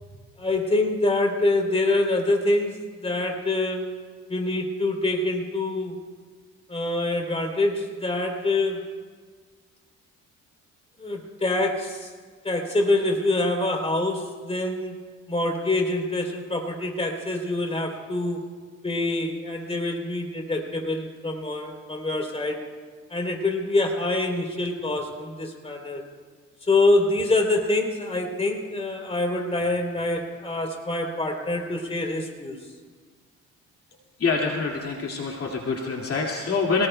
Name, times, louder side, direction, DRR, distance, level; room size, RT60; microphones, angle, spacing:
voice 1, 0.4-3.9 4.3-6.0 6.7-8.8 11.0-12.1 12.4-14.9 15.3-18.4 18.8-22.6 23.1-26.0 26.7-32.6, left 2 dB, 20° left, 2 dB, 3.2 m, -25 dB
voice 2, 34.2-36.9, left 4 dB, 50° left, -1 dB, 2.2 m, -26 dB
27.5 x 19.0 x 2.3 m, 1.5 s
cardioid pair, 90°, 30 cm